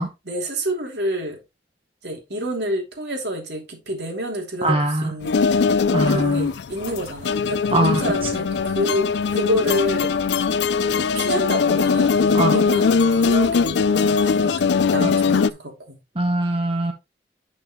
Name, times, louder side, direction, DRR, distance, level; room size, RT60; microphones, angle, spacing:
voice 1, 0.3-1.4 2.0-5.3 6.1-9.1 9.3-10.2 10.9-16.0, equal, 75° right, 3.0 m, -28 dB
voice 2, 4.6-5.1 5.9-6.5 7.7-8.0 12.3-12.6 15.0-15.1 16.2-16.9, right 1 dB, 30° right, 1.1 m, -21 dB
sound 1, 5.2-15.5, left 5 dB, 85° left, 0.4 m, -20 dB
8.9 x 6.2 x 3.1 m
head